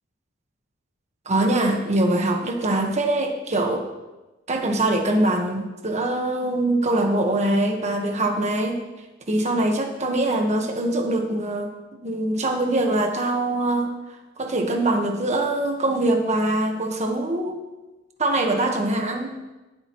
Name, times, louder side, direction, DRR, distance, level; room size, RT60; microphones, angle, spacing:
voice 1, 1.2-3.8 4.5-8.8 9.3-11.7 12.0-13.9 14.4-17.6 18.2-19.3, right 1 dB, 35° right, 3 dB, 1.4 m, -23 dB
18.5 x 8.6 x 3.1 m, 1.1 s
head